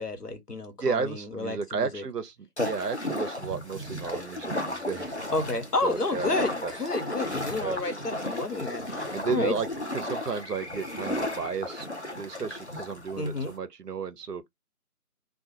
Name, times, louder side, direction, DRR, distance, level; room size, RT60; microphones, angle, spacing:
voice 1, 0.0-2.0 5.3-9.5 13.2-13.5, left 2 dB, 80° left, 1.1 m, -30 dB
voice 2, 0.8-5.2 5.8-6.3 6.6-6.7 7.6-7.8 9.1-9.7 9.9-11.9 12.2-14.5, right 5 dB, 85° right, 0.6 m, -33 dB
sound 1, 2.6-13.6, left 1 dB, 50° left, 0.6 m, -34 dB
2.4 x 2.3 x 2.8 m
figure-of-eight pair, 175°, 46 cm